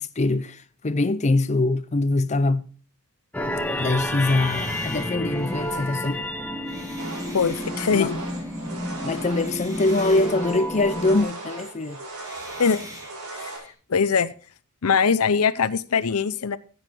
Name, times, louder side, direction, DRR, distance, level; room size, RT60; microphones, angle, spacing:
voice 1, 0.0-2.7 3.8-6.2 7.9-8.1 9.0-12.0, left 2 dB, 30° left, 0.6 m, -23 dB
sound 1, 3.3-11.2, left 1 dB, 5° left, 1.1 m, -30 dB
sound 2, 3.6-9.1 9.3-11.4 12.2-13.7, right 1 dB, 15° right, 3.6 m, -46 dB
sound 3, 7.0-13.6, right 2 dB, 70° right, 4.8 m, -38 dB
voice 2, 7.3-8.3 12.6-12.9 13.4-13.5 13.9-14.3 14.8-16.6, left 6 dB, 70° left, 0.7 m, -22 dB
14.5 x 8.1 x 4.3 m
head